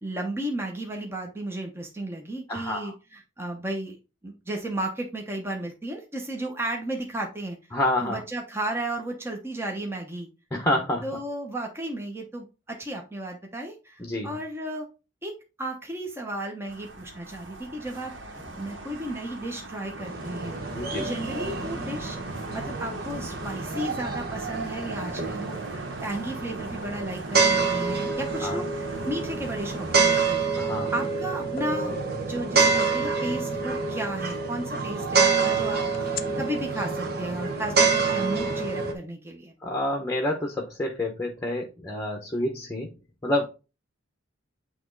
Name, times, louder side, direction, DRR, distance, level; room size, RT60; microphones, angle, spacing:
voice 1, 0.0-7.6 8.0-10.3 11.0-14.9 15.2-15.3 15.6-18.1 18.6-20.6 20.9-22.2 22.5-28.6 29.0-30.5 30.9-31.9 32.2-39.5, right 1 dB, 15° right, 1 dB, 0.9 m, -34 dB
voice 2, 2.5-2.9 7.7-8.2 10.5-11.1 14.0-14.4 20.7-21.1 28.4-28.6 30.6-30.9 39.6-42.9 43.2-43.5, left 1 dB, 15° left, 2 dB, 1.0 m, -28 dB
sound 1, 16.7-30.4, right 2 dB, 75° right, 1.8 m, -41 dB
sound 2, 19.9-38.9, right 4 dB, 50° right, 1.2 m, -27 dB
sound 3, 31.0-31.1 31.6-33.3 35.9-36.2, left 1 dB, 45° left, 0.5 m, -36 dB
8.5 x 3.1 x 3.9 m, 0.29 s
head